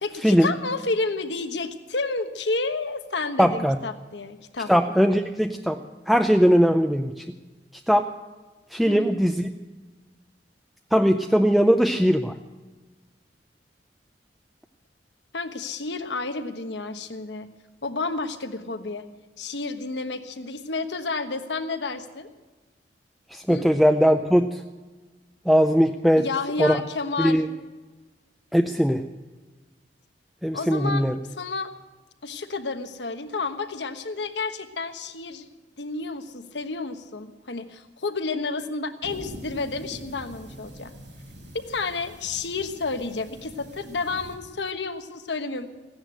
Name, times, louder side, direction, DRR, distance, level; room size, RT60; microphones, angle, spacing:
voice 1, 0.0-4.7 8.9-9.2 15.3-17.5 17.8-19.1 19.4-22.3 23.5-23.7 26.1-27.4 30.5-31.0 31.4-31.7 32.2-35.5 35.8-40.9 41.7-45.7, left 3 dB, 75° left, 8 dB, 1.2 m, -30 dB
voice 2, 3.4-3.8 4.7-5.8 6.1-7.1 7.9-8.1 8.7-9.5 10.9-12.3 23.3-24.6 25.5-26.3 26.6-26.8 27.2-27.5 28.5-29.0 30.4-31.2, equal, ahead, 5 dB, 0.5 m, -20 dB
sound 1, 39.0-44.4, equal, 90° right, 5.8 m, -43 dB
15.5 x 10.5 x 7.8 m, 1.3 s
head